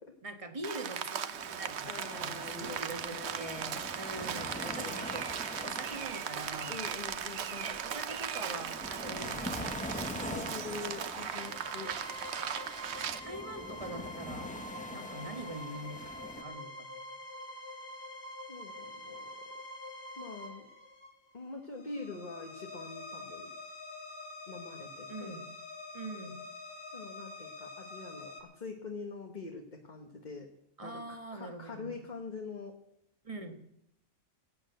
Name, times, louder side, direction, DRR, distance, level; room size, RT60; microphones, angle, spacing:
voice 1, 0.2-5.3 5.6-6.8 7.6-10.0 13.2-14.5 14.9-16.0 16.4-17.0 25.1-25.5 25.9-26.4 30.8-32.0 33.2-33.6, right 2 dB, 25° right, 6 dB, 1.5 m, -43 dB
Rain, 0.6-13.2, right 8 dB, 60° right, 1.0 m, -38 dB
sound 1, 1.3-16.4, left 1 dB, 5° left, 0.8 m, -44 dB
voice 2, 1.8-3.8 4.4-5.1 6.7-7.8 10.2-12.0 18.5-19.3 20.2-20.7 21.3-23.5 24.5-25.4 26.9-30.5 30.8-32.8, left 4 dB, 35° left, 2 dB, 1.4 m, -44 dB
sound 2, 11.0-28.4, left 1 dB, 50° left, 2.7 m, -46 dB
17.0 x 8.8 x 7.8 m, 0.79 s
omnidirectional pair, 1.4 m